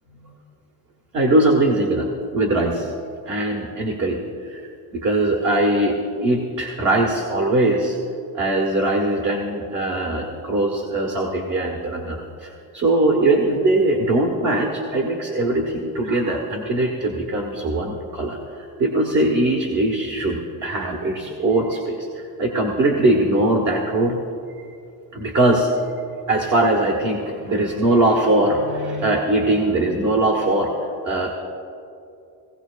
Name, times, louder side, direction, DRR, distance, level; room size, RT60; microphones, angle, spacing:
voice 1, 1.1-2.1 2.3-2.9 3.2-4.6 4.9-8.0 8.3-24.2 25.1-25.7 26.3-31.3, right 2 dB, 45° right, 0 dB, 1.4 m, -21 dB
18.0 x 17.0 x 2.5 m, 2.5 s
cardioid pair, 165°, 41 cm